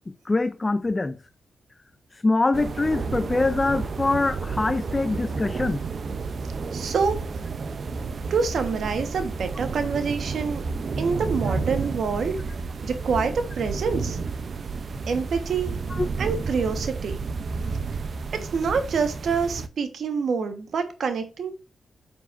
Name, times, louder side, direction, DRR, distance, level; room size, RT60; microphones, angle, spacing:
voice 1, 0.1-1.2 2.2-5.8 15.9-16.1, left 2 dB, 25° left, 0.4 m, -24 dB
sound 1, 2.5-19.7, right 4 dB, 55° right, 0.6 m, -31 dB
voice 2, 6.7-7.2 8.3-10.6 11.0-12.4 12.8-14.2 15.1-15.7 16.2-17.2 18.3-21.5, right 5 dB, 70° right, 1.2 m, -26 dB
9.2 x 6.0 x 2.5 m
cardioid pair, 80°, 0 cm